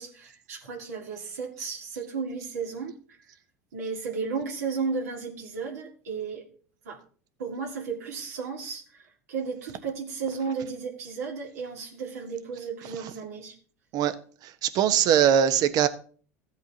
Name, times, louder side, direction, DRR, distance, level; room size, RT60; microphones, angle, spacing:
voice 1, 0.0-2.9 3.7-6.5 6.9-7.0 7.4-9.0 9.3-13.5, right 5 dB, 80° right, 2.1 m, -34 dB
voice 2, 14.4-15.9, right 9 dB, 50° right, 1.1 m, -21 dB
15.0 x 8.0 x 2.9 m
hypercardioid pair, 80°, 8 cm